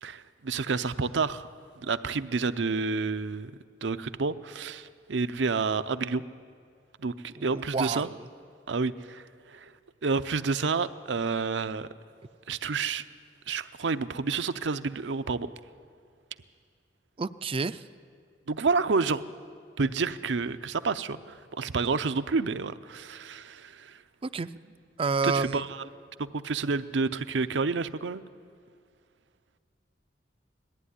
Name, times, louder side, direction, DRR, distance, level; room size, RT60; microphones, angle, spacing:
voice 1, 0.0-1.5 1.8-3.5 3.8-6.2 7.0-8.1 8.7-9.6 10.0-11.9 12.5-13.0 13.5-15.5 18.5-19.2 19.8-24.0 25.2-25.7 26.2-28.2, right 4 dB, 80° right, 12 dB, 0.6 m, -29 dB
voice 2, 7.4-8.3 17.2-17.8 24.2-24.5 25.0-25.7, right 4 dB, 30° right, 13 dB, 0.4 m, -29 dB
19.5 x 14.0 x 9.9 m, 2.2 s
head